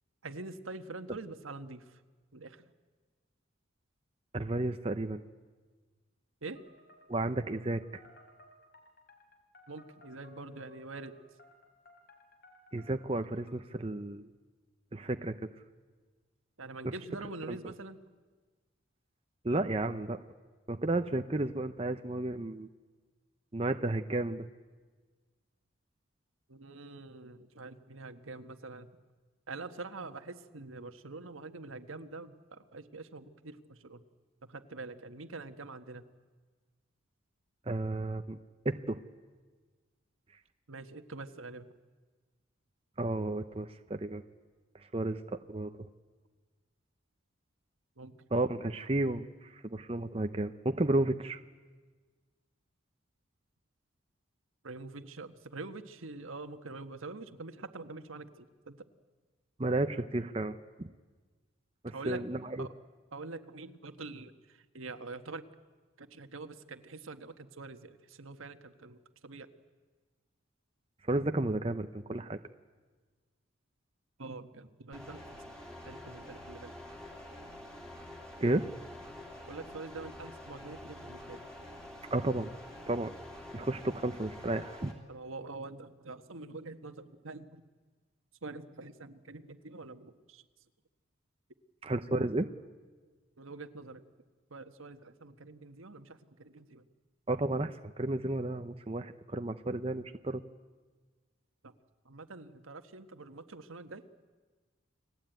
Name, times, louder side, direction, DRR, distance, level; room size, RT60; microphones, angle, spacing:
voice 1, 0.2-2.0 2.3-2.7 6.4-6.6 9.7-11.2 16.6-18.0 26.5-28.9 29.5-34.0 34.4-36.0 40.7-41.7 48.0-48.2 54.6-58.8 61.9-62.2 62.6-62.7 63.1-65.5 66.0-69.5 74.2-75.6 75.8-76.7 79.5-81.5 85.1-87.6 88.4-90.4 93.4-94.0 94.5-96.8 101.6-101.7 102.0-104.0, right 3 dB, 80° right, 8 dB, 1.4 m, -45 dB
voice 2, 4.3-5.2 7.1-8.0 12.7-14.3 14.9-15.5 16.8-16.9 17.5-17.6 19.4-20.2 20.7-22.7 23.5-24.5 37.7-38.4 38.6-39.0 43.0-44.2 44.9-45.7 48.3-51.4 59.6-60.9 61.8-62.7 71.0-72.4 78.4-78.7 82.1-82.5 82.9-83.1 83.5-84.9 91.8-92.5 97.3-100.4, right 2 dB, 30° right, 8 dB, 0.7 m, -32 dB
sound 1, 6.5-13.8, left 2 dB, 45° left, 4.0 m, -59 dB
sound 2, 74.9-84.9, left 1 dB, 5° left, 3.4 m, -47 dB
30.0 x 20.0 x 9.2 m, 1.4 s
head